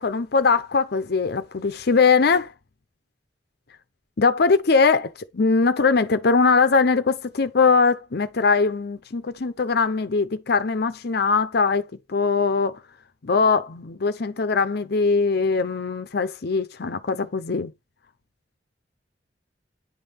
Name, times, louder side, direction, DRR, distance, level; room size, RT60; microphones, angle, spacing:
voice 1, 0.0-2.5 4.2-12.8 13.2-17.7, left 4 dB, 65° left, 0.7 m, -21 dB
10.5 x 3.5 x 5.7 m
head